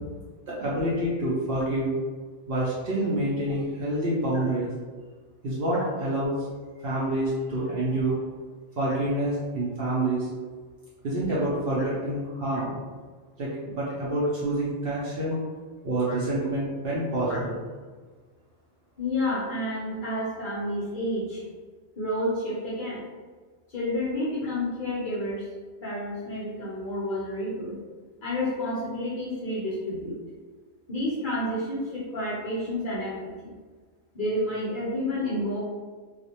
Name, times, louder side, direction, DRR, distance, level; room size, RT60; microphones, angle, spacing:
voice 1, 0.5-1.9 2.5-4.7 5.4-6.3 6.8-8.2 8.8-10.3 11.0-12.8 13.4-15.4 15.8-17.6, right 1 dB, 60° right, -7 dB, 0.6 m, -27 dB
voice 2, 19.0-21.4 22.0-23.1 23.7-25.5 25.8-27.8 28.2-30.2 30.9-33.5 34.1-35.6, left 1 dB, 50° left, -8 dB, 0.7 m, -30 dB
2.4 x 2.1 x 2.7 m, 1.5 s
omnidirectional pair, 1.4 m